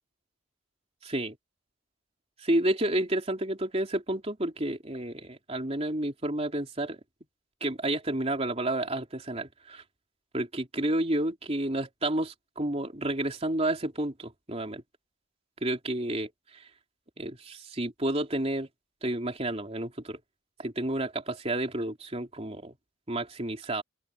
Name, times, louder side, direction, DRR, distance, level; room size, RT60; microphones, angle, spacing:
voice 1, 1.0-1.4 2.4-7.0 7.6-9.8 10.3-14.8 15.6-16.6 17.2-18.7 19.0-20.2 20.6-22.7 23.1-23.8, right 1 dB, 30° right, 3.4 m, -30 dB
open air
head